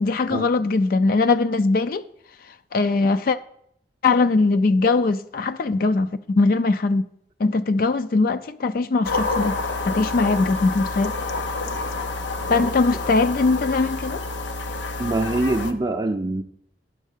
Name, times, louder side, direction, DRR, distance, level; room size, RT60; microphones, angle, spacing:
voice 1, 0.0-2.1 2.7-3.4 4.0-7.1 7.4-9.6 9.8-11.1 12.5-14.2, left 3 dB, 55° left, 0.4 m, -21 dB
sound 1, 9.0-15.7, left 3 dB, 90° left, 0.7 m, -28 dB
voice 2, 15.0-16.4, right 2 dB, 25° right, 0.5 m, -24 dB
10.0 x 3.7 x 7.3 m
head